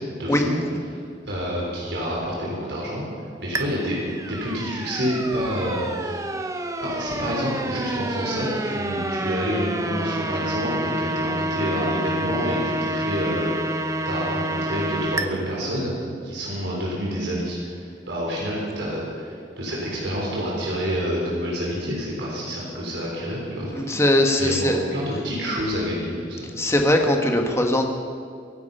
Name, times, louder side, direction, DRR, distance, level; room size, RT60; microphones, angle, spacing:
voice 1, 0.1-0.6 0.9-1.0 1.3-3.0 3.4-4.0 4.2-6.2 6.8-23.9 24.4-26.5, equal, 70° right, -4 dB, 4.3 m, -28 dB
sound 1, 3.5-15.3, right 1 dB, 15° right, 0.8 m, -28 dB
voice 2, 23.7-24.8 26.6-27.9, left 1 dB, 15° left, 3 dB, 1.5 m, -20 dB
23.5 x 11.0 x 5.6 m, 2.3 s
head